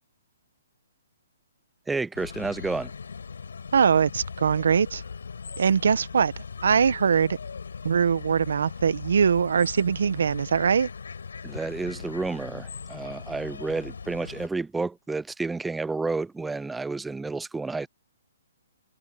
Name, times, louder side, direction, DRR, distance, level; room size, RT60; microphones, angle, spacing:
voice 1, 1.9-2.9 11.4-17.9, right 3 dB, 5° right, 0.7 m, -30 dB
sound 1, 2.1-14.5, left 5 dB, 85° left, 8.0 m, -39 dB
voice 2, 3.7-5.0 5.6-6.3 6.6-7.4 7.8-10.9, right 6 dB, 75° right, 1.3 m, -22 dB
hypercardioid pair, 150°, 0 cm